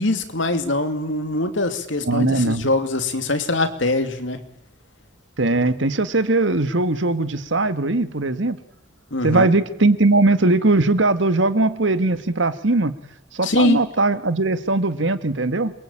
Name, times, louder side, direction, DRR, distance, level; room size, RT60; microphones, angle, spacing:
voice 1, 0.0-4.4 9.1-9.5 13.4-13.8, left 2 dB, 65° left, 9 dB, 2.7 m, -22 dB
voice 2, 2.0-2.7 5.4-8.6 9.2-12.9 13.3-15.7, right 2 dB, 65° right, 12 dB, 1.6 m, -20 dB
28.0 x 22.5 x 8.8 m, 0.79 s
head